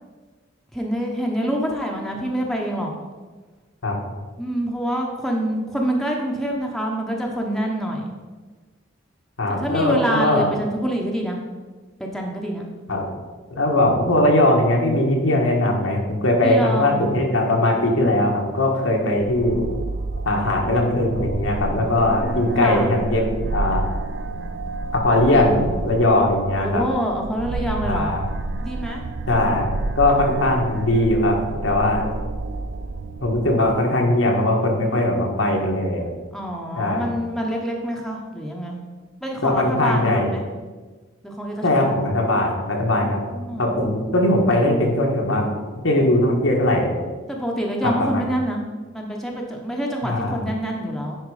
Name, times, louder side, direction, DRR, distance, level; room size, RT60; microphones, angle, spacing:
voice 1, 0.7-2.9 4.4-8.1 9.5-11.4 12.0-12.7 16.4-17.3 22.2-22.4 22.6-22.9 26.6-28.2 28.6-29.0 36.3-38.8 39.2-40.4 41.2-41.8 43.0-43.7 47.3-48.6 48.9-51.2, equal, ahead, -1 dB, 0.9 m, -26 dB
voice 2, 9.4-10.5 12.9-13.1 13.5-19.6 20.2-23.9 24.9-26.9 27.8-28.2 29.3-32.1 33.2-36.1 36.8-37.1 39.4-40.3 41.6-43.2 43.6-45.5 45.8-47.0 47.8-48.2 50.0-50.4, left 1 dB, 85° left, 0 dB, 1.6 m, -20 dB
sound 1, 19.2-33.7, right 2 dB, 65° right, 0.4 m, -30 dB
9.9 x 4.7 x 4.9 m, 1.3 s
head